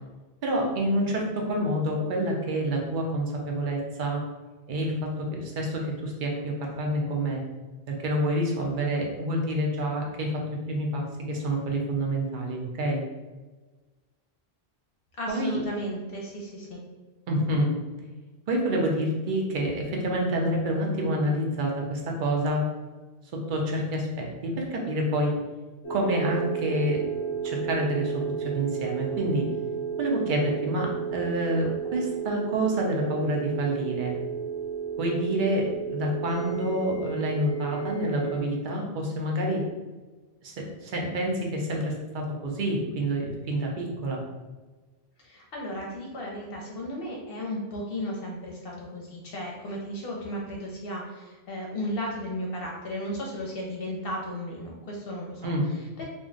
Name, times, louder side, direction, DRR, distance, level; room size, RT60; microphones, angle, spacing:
voice 1, 0.4-4.2 4.7-7.4 7.9-10.4 10.7-13.0 15.3-15.6 17.3-17.7 18.5-22.6 23.3-25.3 25.9-27.0 27.4-29.5 30.0-34.1 35.0-35.7 35.9-39.6 40.4-44.2 55.4-55.7, right 1 dB, 55° right, 0 dB, 0.7 m, -28 dB
voice 2, 15.2-16.8 45.2-56.0, equal, 65° left, -2 dB, 0.8 m, -35 dB
sound 1, 25.8-38.4, right 7 dB, 25° left, 0.3 m, -33 dB
2.5 x 2.1 x 3.7 m, 1.3 s
omnidirectional pair, 1.1 m